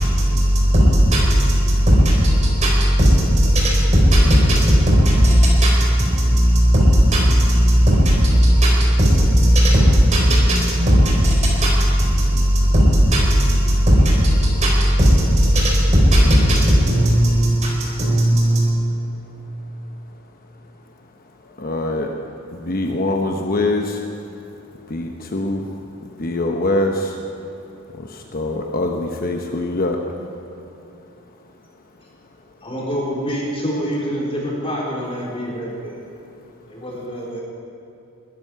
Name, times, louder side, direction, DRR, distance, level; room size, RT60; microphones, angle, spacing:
voice 1, 0.0-18.7, equal, 35° right, -2 dB, 4.3 m, -15 dB
voice 2, 21.6-22.1 22.5-24.0 24.9-25.7 26.2-27.1 28.3-30.1, left 2 dB, 45° left, 2 dB, 1.0 m, -23 dB
voice 3, 32.6-36.0 36.7-37.4, equal, 25° left, -4 dB, 3.7 m, -26 dB
20.5 x 13.0 x 4.8 m, 2.8 s
head